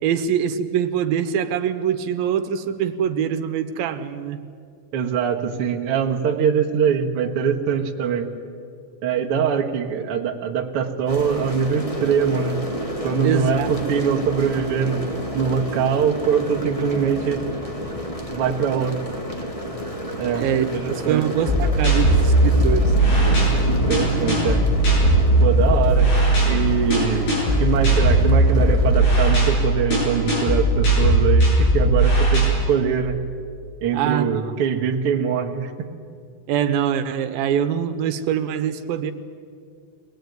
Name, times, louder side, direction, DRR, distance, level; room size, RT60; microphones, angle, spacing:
voice 1, 0.0-4.4 13.2-13.7 20.4-22.9 33.9-34.3 36.5-39.1, right 9 dB, 80° right, 9 dB, 2.7 m, -23 dB
voice 2, 4.9-8.3 9.0-12.6 13.0-15.0 15.3-17.4 18.3-19.0 20.2-20.5 20.7-21.3 23.9-24.6 25.4-26.1 26.4-33.2 33.8-35.9, right 7 dB, 50° right, 3 dB, 1.8 m, -23 dB
sound 1, 11.1-29.5, equal, 25° left, 0.7 m, -30 dB
sound 2, 21.5-32.4, right 1 dB, 80° left, 10.0 m, -18 dB
23.0 x 19.0 x 9.4 m, 2.3 s
omnidirectional pair, 4.2 m